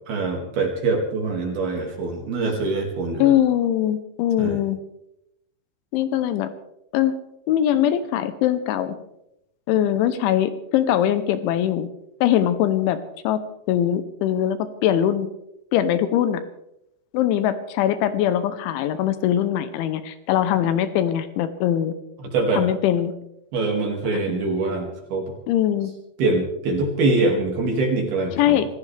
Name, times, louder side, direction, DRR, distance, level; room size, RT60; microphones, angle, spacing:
voice 1, 0.1-3.3 4.4-4.6 22.2-22.7 23.5-25.4 26.2-28.7, right 3 dB, 55° right, 1 dB, 3.8 m, -24 dB
voice 2, 3.2-4.8 5.9-6.5 6.9-7.1 7.5-9.0 9.7-11.9 12.2-13.0 13.2-13.4 13.7-15.3 15.7-16.4 17.1-21.9 22.5-23.1 25.5-25.9 28.4-28.7, left 11 dB, 80° left, 11 dB, 3.2 m, -21 dB
27.0 x 15.5 x 3.4 m, 0.83 s
omnidirectional pair, 5.6 m